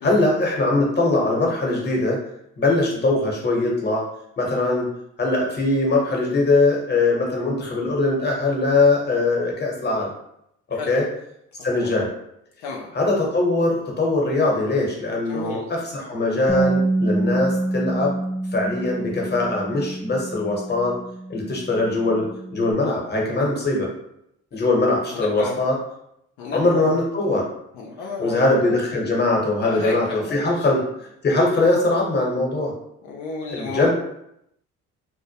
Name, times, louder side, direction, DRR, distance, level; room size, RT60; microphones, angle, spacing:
voice 1, 0.0-2.2 2.6-4.0 4.4-4.9 5.2-10.1 10.7-11.1 11.6-12.1 12.9-18.2 18.5-21.0 21.3-23.9 24.5-25.8 26.5-27.5 28.2-32.7 33.5-33.9, left 2 dB, 35° left, -1 dB, 0.9 m, -21 dB
voice 2, 10.7-11.0 11.6-11.9 12.6-12.9 15.3-15.7 25.1-25.6 26.4-27.0 27.7-29.0 29.6-30.7 33.0-33.9, left 3 dB, 80° left, -3 dB, 0.5 m, -32 dB
Bass guitar, 16.5-22.7, right 2 dB, ahead, 0.4 m, -27 dB
2.1 x 2.1 x 2.8 m, 0.78 s
supercardioid pair, 65°, 30 cm